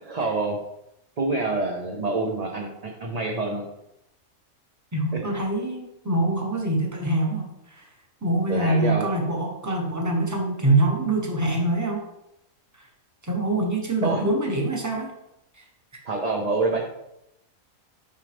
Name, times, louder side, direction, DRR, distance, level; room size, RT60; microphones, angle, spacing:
voice 1, 0.0-0.6 1.2-2.7 3.0-3.6 8.5-9.1 14.0-14.2 16.1-16.8, right 3 dB, 40° right, 0 dB, 0.6 m, -26 dB
voice 2, 4.9-7.9 8.2-12.0 12.8-12.9 13.2-15.1 15.6-15.7 15.9-16.0, right 2 dB, 15° right, 1 dB, 1.0 m, -24 dB
6.7 x 5.2 x 3.4 m, 0.83 s
omnidirectional pair, 1.5 m